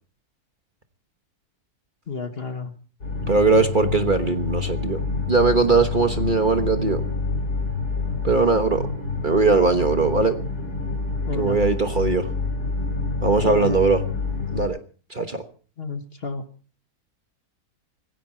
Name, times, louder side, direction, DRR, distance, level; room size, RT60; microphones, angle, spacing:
voice 1, 2.1-2.8 11.3-11.6 13.4-13.7 15.8-16.5, left 4 dB, 40° left, 1.6 m, -30 dB
sound 1, 3.0-14.7, left 4 dB, 80° left, 4.7 m, -28 dB
voice 2, 3.3-5.0 5.3-7.0 8.2-8.8 9.2-10.3 11.3-12.3 13.2-14.0 14.5-14.8 15.1-15.4, right 4 dB, 35° right, 1.3 m, -20 dB
20.0 x 16.0 x 4.4 m
omnidirectional pair, 1.6 m